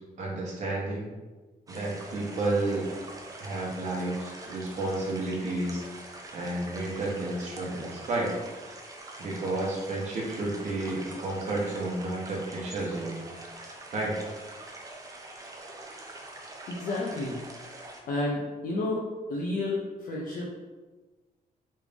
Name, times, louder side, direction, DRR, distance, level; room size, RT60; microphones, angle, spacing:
voice 1, 0.2-1.1 1.7-2.9 3.4-5.8 6.3-8.3 9.2-13.2 13.9-14.2, right 2 dB, 50° right, -4 dB, 0.9 m, -31 dB
sound 1, 1.7-18.0, right 2 dB, 20° right, 0.4 m, -44 dB
voice 2, 16.7-17.4 18.1-19.0 19.3-20.7, left 2 dB, 60° left, -5 dB, 0.5 m, -31 dB
3.2 x 2.5 x 3.4 m, 1.3 s
wide cardioid pair, 175°, 16 cm